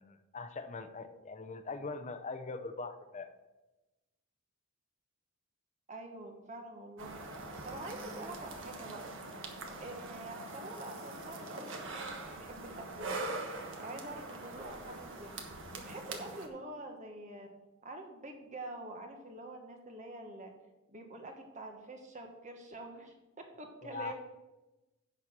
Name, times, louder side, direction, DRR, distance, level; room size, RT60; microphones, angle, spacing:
voice 1, 0.0-3.3 23.8-24.1, left 4 dB, 35° left, 9 dB, 0.7 m, -42 dB
voice 2, 5.9-9.0 9.8-13.2 13.8-15.3 15.7-17.5 17.8-20.5 20.9-23.1 23.6-24.1, right 2 dB, 35° right, 3 dB, 1.5 m, -46 dB
sound 1, 7.0-16.5, right 2 dB, 65° right, 1.4 m, -43 dB
11.0 x 4.3 x 7.4 m, 1.1 s
head